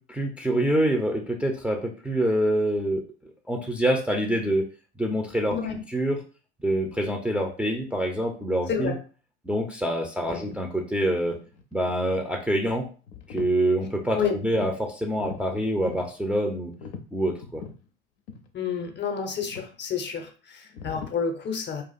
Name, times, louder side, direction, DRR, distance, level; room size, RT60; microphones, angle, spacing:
voice 1, 0.0-3.0 3.5-4.6 5.0-5.6 5.9-6.2 6.6-9.0 9.4-11.4 11.7-12.9 13.3-16.7 17.1-17.6, right 1 dB, 5° right, 0 dB, 0.6 m, -26 dB
voice 2, 5.5-5.8 8.7-9.0 10.3-10.5 14.1-14.4 18.5-21.8, left 6 dB, 30° left, 5 dB, 0.7 m, -29 dB
sound 1, 10.2-10.6 11.0-12.3 12.8-13.6 13.9-14.8 15.1-16.1 16.7-17.8 18.3-18.5 18.8-18.9 19.4-19.8 20.7-21.1, left 6 dB, 70° left, 0.6 m, -41 dB
2.5 x 2.4 x 4.0 m, 0.38 s
figure-of-eight pair, 60°, 34 cm